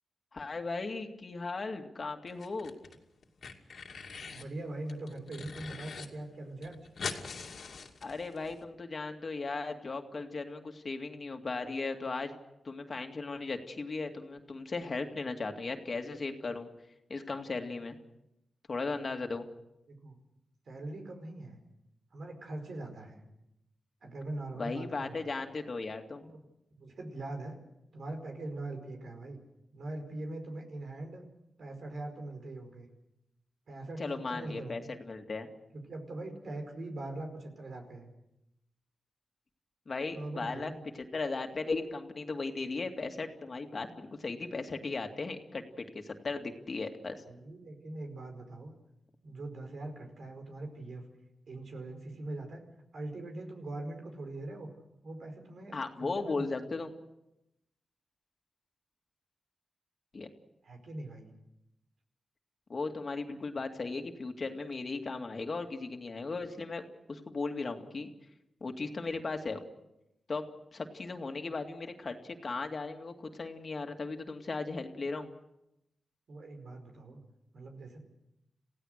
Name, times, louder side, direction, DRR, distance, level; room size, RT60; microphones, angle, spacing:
voice 1, 0.3-2.7 8.0-12.4 12.6-16.7 17.1-18.0 18.7-19.5 24.6-26.3 34.0-35.5 39.9-40.7 41.1-47.2 55.7-56.9 60.1-60.3 62.7-66.8 67.1-68.1 68.6-69.6 70.3-70.4 70.7-75.3, left 3 dB, 50° left, 5 dB, 2.3 m, -37 dB
sound 1, 2.3-3.0 3.2-4.5 4.9-6.1 6.3-6.4 6.6-8.5, left 5 dB, 75° left, 2.5 m, -42 dB
voice 2, 4.3-6.8 20.0-20.2 20.7-21.6 22.1-23.2 24.0-25.3 26.2-26.4 26.8-27.6 27.9-29.4 29.7-31.2 31.6-32.9 33.7-35.0 35.7-38.1 40.1-40.8 47.3-48.7 49.2-51.0 51.5-52.6 52.9-54.7 55.0-56.4 60.6-61.3 76.3-77.2 77.5-78.0, right 2 dB, 70° right, 4 dB, 5.0 m, -42 dB
28.0 x 16.5 x 6.6 m, 0.87 s
cardioid pair, 75°, 0 cm